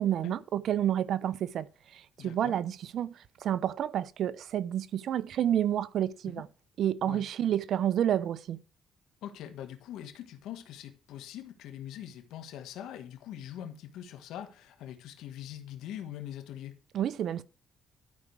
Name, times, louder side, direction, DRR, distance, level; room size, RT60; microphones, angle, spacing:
voice 1, 0.0-1.7 1.9-6.5 6.8-8.6 16.9-17.4, right 10 dB, 70° right, 0.7 m, -29 dB
voice 2, 2.2-2.6 6.3-6.4 7.1-7.2 9.2-16.8, left 11 dB, 90° left, 1.6 m, -43 dB
12.5 x 4.7 x 6.3 m
cardioid pair, 90°, 0 cm